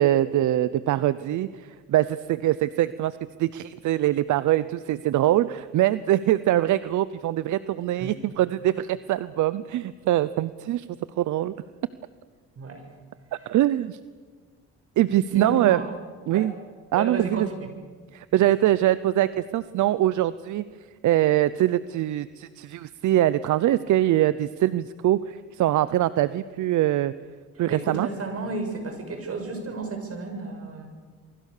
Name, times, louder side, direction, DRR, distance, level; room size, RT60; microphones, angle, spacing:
voice 1, 0.0-10.9 11.2-11.5 13.5-14.0 15.0-15.8 16.3-16.5 16.9-17.5 18.1-20.6 21.0-27.1 27.6-28.1, right 13 dB, 75° right, 16 dB, 0.8 m, -23 dB
voice 2, 12.6-12.9 15.3-15.9 16.3-16.5 16.9-17.5 27.7-30.9, right 3 dB, 50° right, 5 dB, 6.6 m, -32 dB
28.5 x 23.5 x 6.7 m, 1.5 s
cardioid pair, 90°, 30 cm